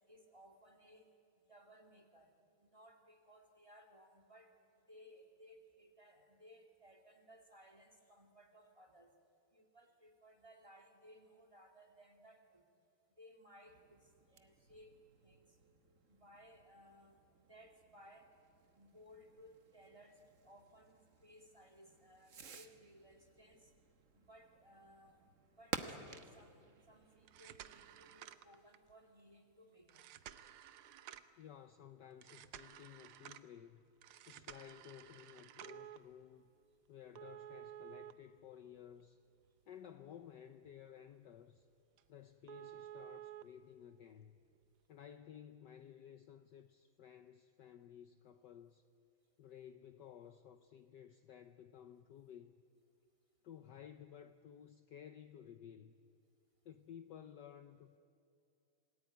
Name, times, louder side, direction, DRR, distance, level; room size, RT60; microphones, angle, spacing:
voice 1, 0.1-1.1 1.5-2.3 2.6-4.6 4.9-9.1 9.5-12.6 13.2-15.6 16.1-18.3 18.7-23.7 24.1-25.2 25.6-30.2, equal, 15° right, 2.2 m, -62 dB
Fireworks, 13.6-28.2, right 6 dB, 45° right, 1.2 m, -53 dB
sound 1, 27.2-28.9 29.9-31.4 32.2-33.5 34.0-36.0 37.2-39.0 39.4-39.5 40.1-40.2 40.6-40.8 41.1-41.2 41.6-41.7 42.0-42.1 42.5-43.4 44.5-44.6, right 11 dB, 75° right, 1.7 m, -53 dB
voice 2, 31.4-33.8 34.3-36.5 36.9-39.2 39.7-41.7 42.1-44.4 44.9-48.8 49.4-52.5 53.4-56.1 56.6-58.0, left 9 dB, 65° left, 1.2 m, -55 dB
27.5 x 19.5 x 9.4 m
omnidirectional pair, 2.4 m